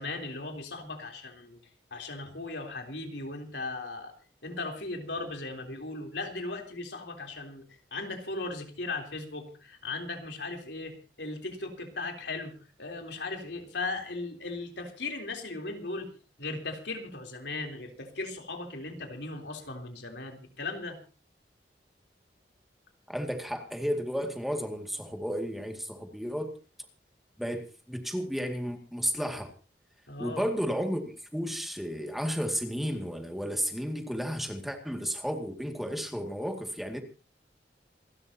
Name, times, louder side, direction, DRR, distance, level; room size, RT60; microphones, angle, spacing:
voice 1, 0.0-1.6 1.9-4.1 4.4-16.1 16.4-21.0 30.1-30.5, left 3 dB, 90° left, 3 dB, 3.5 m, -37 dB
voice 2, 23.1-26.5 27.4-29.5 30.2-37.0, equal, ahead, 4 dB, 2.1 m, -33 dB
28.0 x 12.5 x 2.8 m, 0.34 s
head